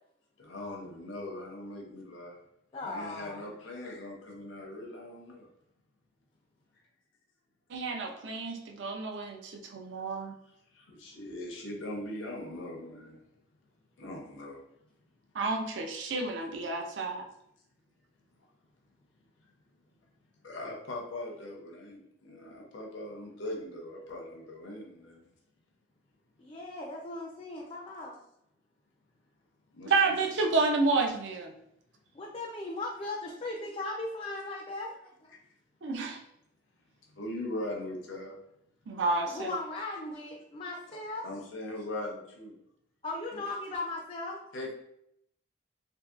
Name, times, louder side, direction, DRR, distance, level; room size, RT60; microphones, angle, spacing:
voice 1, 0.4-2.4 2.7-5.5 10.7-13.2 14.0-14.6 20.4-25.3 29.7-30.2 35.3-35.4 37.1-38.4 40.9-41.0 41.2-42.6 43.3-43.4 44.5-44.7, left 1 dB, 75° left, 0 dB, 0.6 m, -40 dB
voice 2, 2.7-3.4 26.4-28.2 32.1-35.3 39.3-41.3 43.0-44.4, left 2 dB, 30° left, -1 dB, 0.3 m, -38 dB
voice 3, 7.7-10.3 15.3-17.3 29.8-31.5 35.8-36.2 38.9-39.5, right 3 dB, 65° right, 2 dB, 0.5 m, -30 dB
2.9 x 2.6 x 2.4 m, 0.75 s
head